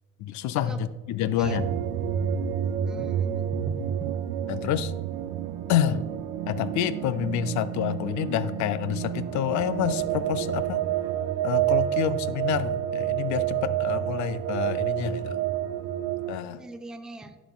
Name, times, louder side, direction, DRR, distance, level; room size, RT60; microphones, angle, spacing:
voice 1, 0.2-1.6 4.5-4.9 5.7-6.0 6.5-10.8 11.4-15.4 16.3-16.6, left 10 dB, 55° left, 14 dB, 0.5 m, -28 dB
voice 2, 1.3-1.8 2.8-4.2 16.6-17.4, right 2 dB, ahead, 7 dB, 0.4 m, -40 dB
sound 1, 1.4-16.4, right 11 dB, 55° right, 0.5 m, -29 dB
11.0 x 4.0 x 2.3 m, 1.2 s
hypercardioid pair, 65°, 36 cm